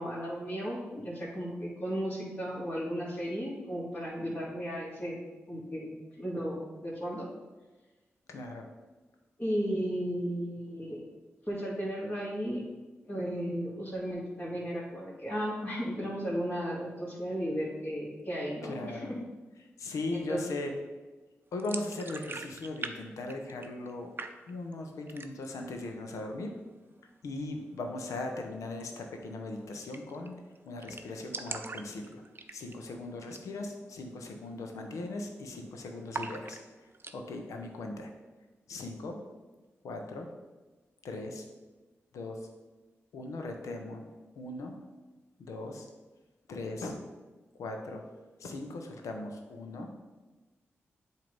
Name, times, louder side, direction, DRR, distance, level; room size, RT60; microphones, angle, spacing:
voice 1, 0.0-5.2 5.5-7.3 9.4-11.0 11.5-12.6 13.1-19.1 20.1-20.4, equal, 30° left, -9 dB, 2.2 m, -35 dB
voice 2, 8.3-8.7 18.6-19.1 19.8-20.7 21.5-24.1 24.5-26.5 27.2-30.4 30.7-32.2 32.5-36.6 37.1-38.1 38.7-39.2 39.8-40.3 41.0-41.5 42.1-42.4 43.1-44.1 44.4-44.8 45.4-45.9 46.5-47.0 47.6-48.0 48.4-49.9, left 2 dB, 80° left, 3 dB, 0.8 m, -38 dB
sound 1, 21.6-22.9 23.2-23.9 24.2-24.7 25.1-25.6 25.9-26.0 26.4-27.0 28.7-28.8 29.2-29.3 29.5-29.6 29.9-30.3 30.5-30.6 30.8-32.9 33.2-33.5 33.8-33.9 34.5-34.8 35.0-35.6 36.1-37.2, right 3 dB, 45° right, 0.6 m, -41 dB
7.7 x 2.9 x 5.3 m, 1.2 s
supercardioid pair, 40°, 5 cm